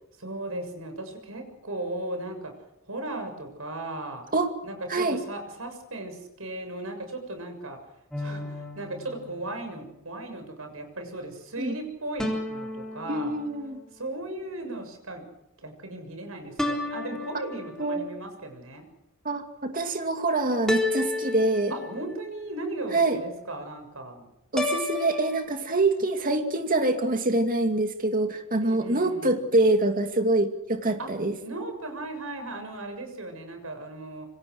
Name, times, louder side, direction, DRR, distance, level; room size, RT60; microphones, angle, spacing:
voice 1, 0.2-2.5 2.9-4.2 4.6-7.8 8.2-13.4 13.9-15.2 15.6-18.9 21.7-24.3 28.6-29.4 31.0-31.1 31.4-34.3, right 2 dB, 80° right, 6 dB, 6.9 m, -37 dB
sound 1, 8.1-9.8 12.2-13.9 16.6-18.1 20.7-22.3 24.6-25.4, left 2 dB, 5° left, 3.8 m, -32 dB
voice 2, 13.1-13.8 17.8-18.1 19.2-21.7 22.9-23.2 24.5-31.3, right 2 dB, 40° right, 5 dB, 2.5 m, -25 dB
27.0 x 25.5 x 6.4 m, 0.84 s
head